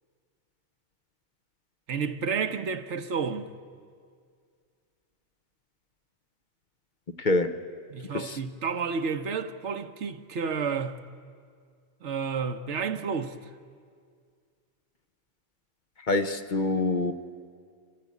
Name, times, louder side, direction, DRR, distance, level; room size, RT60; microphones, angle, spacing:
voice 1, 1.9-3.5 7.9-11.0 12.0-13.4, right 5 dB, 70° right, 1.2 m, -31 dB
voice 2, 7.2-7.6 8.1-8.4 16.1-17.1, left 2 dB, 45° left, 0.9 m, -25 dB
26.0 x 16.0 x 8.4 m
omnidirectional pair, 1.2 m